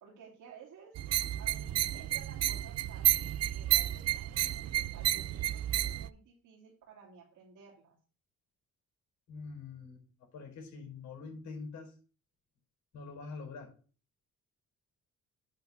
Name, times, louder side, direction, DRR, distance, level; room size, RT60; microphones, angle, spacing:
voice 1, 0.0-0.9 1.4-8.0, right 7 dB, 85° right, -3 dB, 2.6 m, -55 dB
sound 1, 0.9-6.1, right 13 dB, 55° right, 0.4 m, -31 dB
voice 2, 9.3-10.0 10.3-11.9 12.9-13.7, left 4 dB, 65° left, 1 dB, 4.3 m, -44 dB
9.0 x 3.6 x 6.9 m, 0.38 s
cardioid pair, 90°, 30 cm